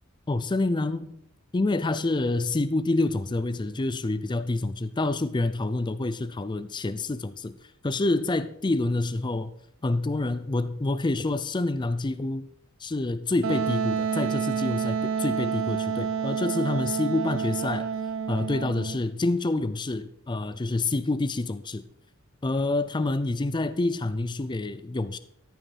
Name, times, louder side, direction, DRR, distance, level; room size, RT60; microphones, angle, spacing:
voice 1, 0.3-1.1 1.5-7.5 7.8-9.5 9.8-12.5 12.8-17.9 18.3-21.8 22.4-25.2, left 2 dB, 20° left, 13 dB, 0.4 m, -27 dB
Wind instrument woodwind instrument, 13.4-19.0, right 6 dB, 65° right, 0.5 m, -29 dB
13.5 x 5.7 x 5.7 m, 0.74 s
head